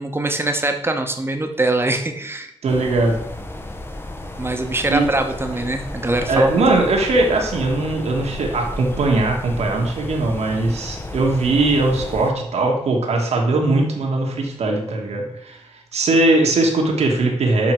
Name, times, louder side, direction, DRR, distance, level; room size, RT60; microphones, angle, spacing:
voice 1, 0.0-2.5 4.4-6.6, right 2 dB, 20° right, 5 dB, 1.0 m, -22 dB
voice 2, 2.6-3.2 4.9-5.1 6.3-15.6 15.9-17.7, right 2 dB, 85° right, 1 dB, 1.4 m, -20 dB
sound 1, 2.7-12.3, left 1 dB, 20° left, 0.8 m, -33 dB
7.6 x 3.6 x 4.4 m, 0.78 s
cardioid pair, 60°, 11 cm